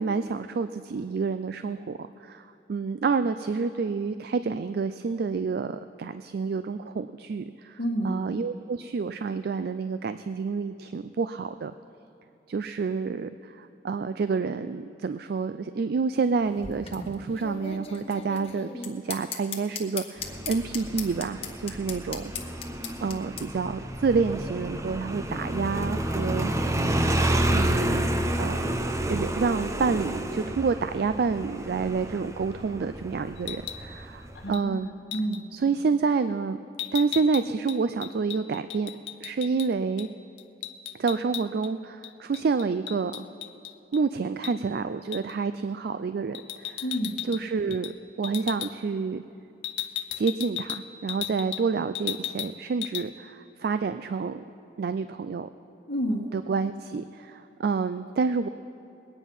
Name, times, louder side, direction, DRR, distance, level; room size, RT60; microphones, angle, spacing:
voice 1, 0.0-11.7 12.5-22.3 23.0-26.5 27.5-28.8 29.1-34.9 35.5-36.6 36.9-38.9 39.2-40.1 41.0-43.2 43.9-46.9 47.2-49.2 50.2-54.4 54.8-55.5 56.3-58.5, right 5 dB, 55° right, 11 dB, 0.4 m, -28 dB
voice 2, 7.8-8.2 34.3-35.4 46.8-47.2 55.9-56.2, equal, 60° left, -1 dB, 1.5 m, -30 dB
sound 1, 16.4-23.4, left 6 dB, 30° left, 1.2 m, -37 dB
Motorcycle, 20.2-34.5, right 1 dB, 15° right, 0.6 m, -30 dB
sound 2, 33.4-33.9 34.5-34.7 35.1-35.4 36.8-39.7 40.0-40.1 40.4-41.7 42.0-44.0 44.4-44.6 45.1-45.3 46.3-47.4 47.7-48.0 48.2-48.7 49.6-51.7 51.9-52.5 52.8-53.1, left 12 dB, 90° left, 0.6 m, -36 dB
21.5 x 9.1 x 5.4 m, 2.6 s
head